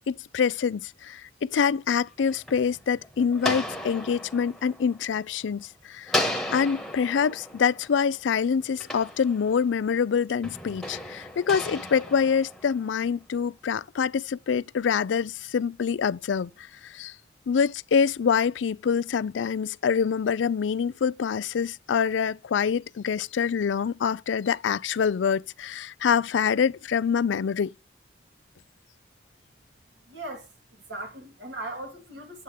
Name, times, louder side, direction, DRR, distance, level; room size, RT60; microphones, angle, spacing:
voice 1, 0.1-6.2 6.5-16.5 16.8-17.1 17.5-27.7, left 6 dB, 85° left, 0.4 m, -25 dB
sound 1, 2.2-5.6 6.1-9.8 10.4-13.1, left 1 dB, ahead, 1.4 m, -35 dB
voice 2, 30.1-32.4, right 2 dB, 75° right, 2.9 m, -39 dB
8.9 x 7.9 x 3.4 m
head